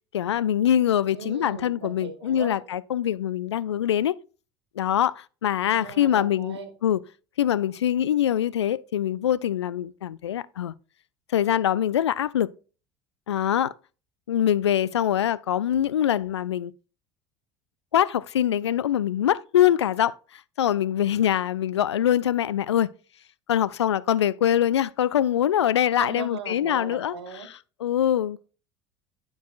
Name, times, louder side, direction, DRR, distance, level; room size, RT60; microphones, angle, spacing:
voice 1, 0.1-4.1 4.8-7.0 7.4-10.7 11.3-12.5 13.3-13.7 14.3-16.7 17.9-22.9 23.5-27.1 27.8-28.4, left 10 dB, 75° left, 0.4 m, -23 dB
voice 2, 1.1-2.6 5.7-6.7 26.0-27.5, right 5 dB, 70° right, 1.5 m, -38 dB
12.5 x 4.8 x 2.3 m
figure-of-eight pair, 65°, 14 cm